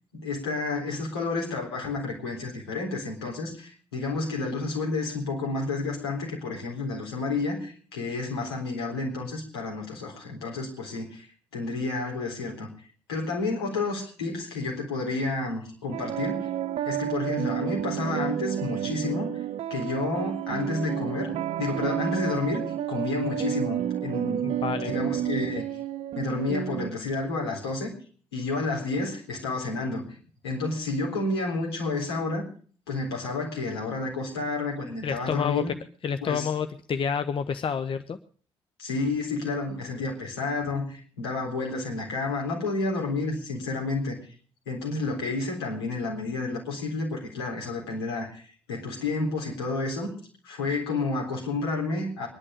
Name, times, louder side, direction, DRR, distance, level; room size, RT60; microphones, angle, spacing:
voice 1, 0.1-11.3 11.5-12.7 13.1-16.4 16.8-19.3 19.7-22.6 22.9-24.4 24.7-25.7 26.2-27.9 28.3-30.1 30.4-32.4 32.9-35.7 36.2-36.5 38.8-44.2 44.7-50.1 50.4-52.3, left 3 dB, 80° left, -1 dB, 3.9 m, -30 dB
sound 1, 15.9-26.9, right 12 dB, 50° right, 0.7 m, -30 dB
voice 2, 24.4-24.9 35.0-35.6 36.0-38.2, left 7 dB, 40° left, 10 dB, 0.9 m, -29 dB
21.5 x 11.0 x 5.0 m, 0.44 s
figure-of-eight pair, 40°, 13 cm